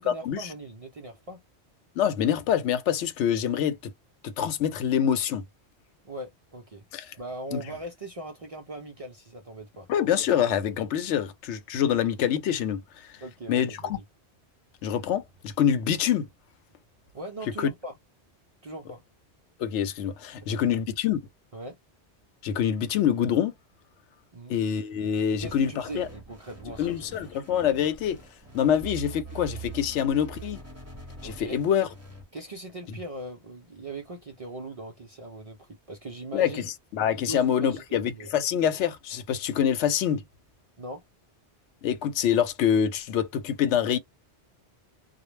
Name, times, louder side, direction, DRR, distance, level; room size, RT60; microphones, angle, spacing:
voice 1, 0.0-1.4 6.0-6.8 7.2-9.9 13.2-14.0 17.1-17.9 18.6-19.0 20.4-20.8 21.5-21.8 24.3-24.6 25.3-27.4 31.2-31.6 32.3-36.7 37.2-38.3 40.8-41.0, right 2 dB, 50° right, 0.4 m, -40 dB
voice 2, 2.0-3.9 4.2-5.4 6.9-7.1 7.5-7.6 9.9-12.8 13.5-14.0 14.8-16.3 17.6-17.7 19.6-21.2 22.4-23.5 24.5-26.1 26.8-28.2 28.5-30.6 31.2-31.9 36.3-40.2 41.8-44.0, left 9 dB, 85° left, 0.9 m, -25 dB
sound 1, 25.4-32.2, right 4 dB, 15° right, 0.8 m, -44 dB
2.2 x 2.0 x 3.1 m
omnidirectional pair, 1.2 m